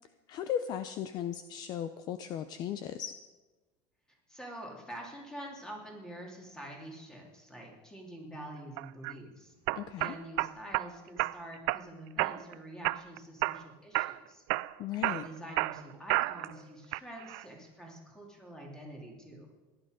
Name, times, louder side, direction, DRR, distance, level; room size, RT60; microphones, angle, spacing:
voice 1, 0.3-3.1 9.8-10.1 14.8-15.3, left 9 dB, 40° left, 11 dB, 0.5 m, -36 dB
voice 2, 4.3-9.5 10.0-14.4 15.1-19.5, right 1 dB, 5° left, 0 dB, 2.7 m, -46 dB
sound 1, 8.8-9.1 9.7-10.9 11.2-11.8 12.2-12.5 12.8-13.6 13.9-14.2 14.5-16.5 16.9-17.4, right 21 dB, 70° right, 0.4 m, -31 dB
17.0 x 11.0 x 5.1 m, 1.2 s
cardioid pair, 160°, 11 cm